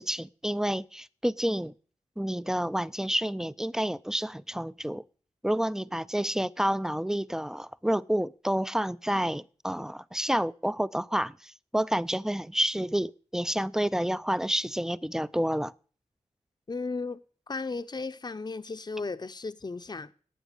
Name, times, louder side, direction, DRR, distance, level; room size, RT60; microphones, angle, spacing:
voice 1, 0.0-1.7 2.2-5.0 5.4-15.7, equal, 5° right, 0.5 m, -29 dB
voice 2, 16.7-17.2 17.5-20.1, left 3 dB, 35° left, 0.7 m, -35 dB
10.0 x 9.0 x 8.1 m
cardioid pair, 55°, 12 cm